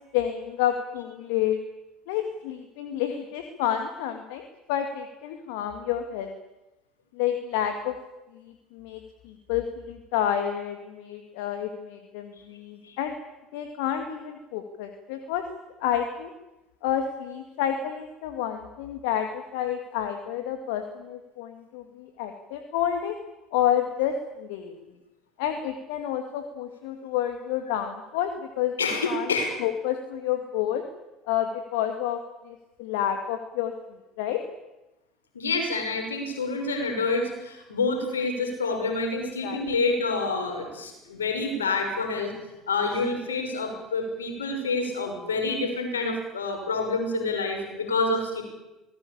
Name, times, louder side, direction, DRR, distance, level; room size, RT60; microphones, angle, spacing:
voice 1, 0.0-1.6 2.1-6.3 7.1-7.9 8.3-13.1 13.5-15.4 15.8-16.3 16.8-23.2 23.5-24.7 25.4-28.7 29.1-29.3 29.6-30.8 31.3-33.7 34.2-34.4 39.4-39.6, left 10 dB, 70° left, 6 dB, 2.0 m, -29 dB
voice 2, 28.8-29.6 35.3-42.3 42.7-48.4, left 3 dB, 90° left, 4 dB, 6.0 m, -27 dB
25.5 x 19.5 x 8.7 m, 1.0 s
hypercardioid pair, 65°, 0 cm